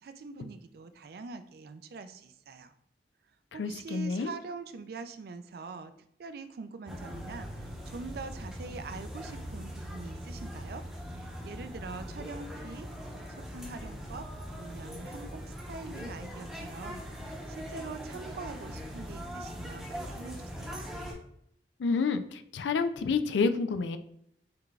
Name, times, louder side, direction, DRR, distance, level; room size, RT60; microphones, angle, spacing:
voice 1, 0.0-2.7 3.5-5.9 6.2-10.8 11.1-12.9 13.3-20.9, right 4 dB, 55° right, 10 dB, 0.3 m, -44 dB
voice 2, 3.6-4.3 21.8-24.0, left 4 dB, 85° left, 10 dB, 0.4 m, -29 dB
sound 1, 6.9-21.1, equal, 5° right, 0.8 m, -41 dB
5.8 x 3.2 x 2.4 m, 0.73 s
head